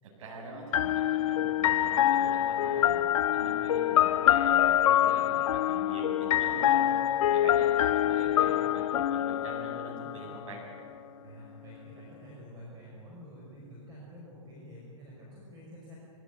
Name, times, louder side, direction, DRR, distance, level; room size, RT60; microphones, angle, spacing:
voice 1, 0.0-3.0 3.3-6.9 7.3-10.6, right 2 dB, 65° right, -2 dB, 7.9 m, -43 dB
sound 1, 0.7-10.5, left 12 dB, 80° left, 0.5 m, -25 dB
voice 2, 11.2-16.0, equal, 25° right, -5 dB, 5.8 m, -48 dB
23.0 x 16.5 x 9.7 m, 2.6 s
hypercardioid pair, 140°, 17 cm